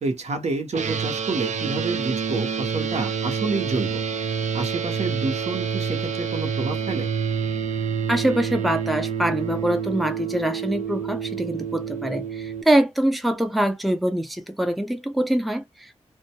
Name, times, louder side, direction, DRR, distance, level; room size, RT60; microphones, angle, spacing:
voice 1, 0.0-4.0 4.5-7.1, right 3 dB, 70° right, 0.8 m, -28 dB
sound 1, 0.7-12.6, right 6 dB, 90° right, 0.4 m, -28 dB
voice 2, 8.1-15.9, right 1 dB, ahead, 0.4 m, -24 dB
2.1 x 2.1 x 2.8 m
wide cardioid pair, 85°, 12 cm